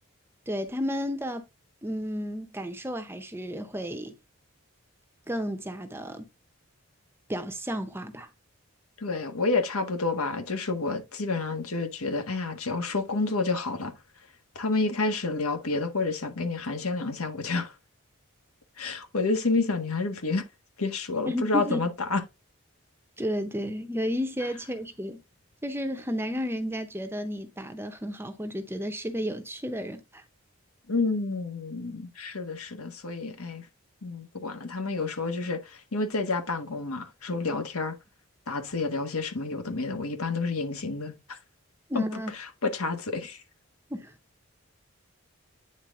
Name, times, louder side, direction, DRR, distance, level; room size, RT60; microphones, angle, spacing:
voice 1, 0.5-1.5 1.8-4.2 5.3-6.3 7.3-8.3 21.3-21.8 23.2-25.2 25.6-30.2 41.9-42.3 43.9-44.2, equal, 10° right, 0.7 m, -32 dB
voice 2, 9.0-13.9 14.6-17.7 18.8-20.5 20.8-22.2 30.9-33.7 34.0-37.9 38.5-41.4 41.9-42.0 42.6-43.4, left 3 dB, 85° left, 1.6 m, -29 dB
9.3 x 3.9 x 3.6 m
head